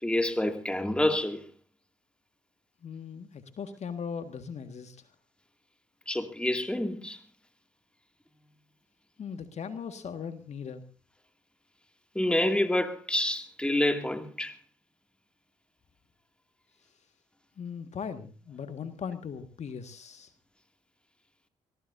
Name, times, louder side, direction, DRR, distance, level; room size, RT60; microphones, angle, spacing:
voice 1, 0.0-1.4 6.1-7.2 12.1-14.6, left 1 dB, 5° left, 2.3 m, -28 dB
voice 2, 2.8-5.0 9.2-10.8 17.6-20.3, left 6 dB, 50° left, 1.8 m, -39 dB
24.5 x 17.5 x 2.7 m
hypercardioid pair, 50°, 15 cm